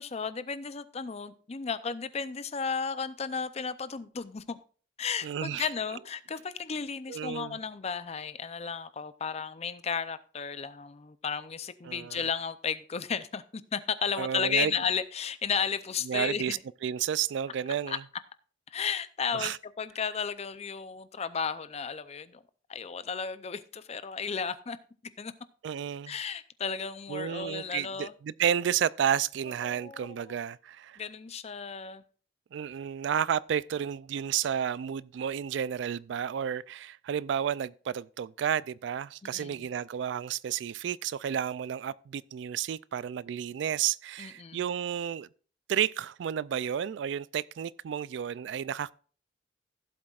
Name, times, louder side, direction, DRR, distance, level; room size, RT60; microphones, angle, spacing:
voice 1, 0.0-4.6 5.0-16.6 17.9-18.0 18.7-22.4 22.7-24.8 25.2-25.3 26.1-28.1 29.6-30.3 31.0-32.0 39.3-39.7 44.2-44.7, left 6 dB, 35° left, 0.5 m, -34 dB
voice 2, 5.2-5.7 7.1-7.6 11.8-12.2 14.2-14.7 16.0-18.0 19.3-19.6 25.6-26.1 27.1-31.0 32.5-45.3 45.7-48.9, right 9 dB, 70° right, 0.3 m, -31 dB
16.0 x 7.6 x 2.4 m
head